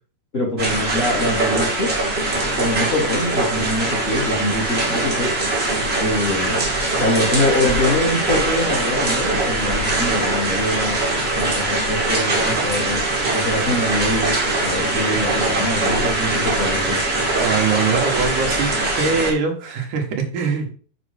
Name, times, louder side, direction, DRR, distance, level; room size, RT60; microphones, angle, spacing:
voice 1, 0.3-2.0 2.6-5.3 6.0-6.6 6.9-11.0 11.3-13.0 13.3-14.3 14.6-17.0, left 1 dB, 75° left, -1 dB, 0.5 m, -24 dB
sound 1, 0.6-19.3, right 2 dB, 20° right, 1.7 m, -22 dB
voice 2, 17.4-18.7 19.0-20.7, right 5 dB, 60° right, 1 dB, 2.5 m, -22 dB
7.7 x 4.7 x 5.1 m, 0.41 s
omnidirectional pair, 4.8 m